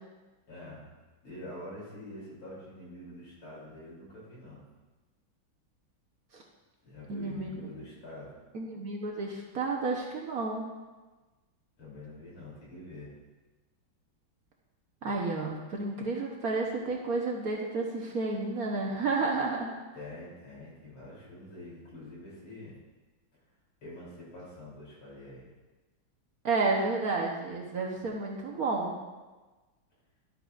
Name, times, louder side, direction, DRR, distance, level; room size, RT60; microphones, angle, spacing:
voice 1, 0.5-0.9 1.2-4.7 6.8-8.3 11.8-13.1 19.9-22.8 23.8-25.4, left 1 dB, 85° left, -6 dB, 4.0 m, -46 dB
voice 2, 7.1-7.7 8.5-10.7 15.0-19.7 26.4-29.0, right 3 dB, 55° right, -1 dB, 1.2 m, -31 dB
11.5 x 8.8 x 2.5 m, 1.2 s
omnidirectional pair, 2.2 m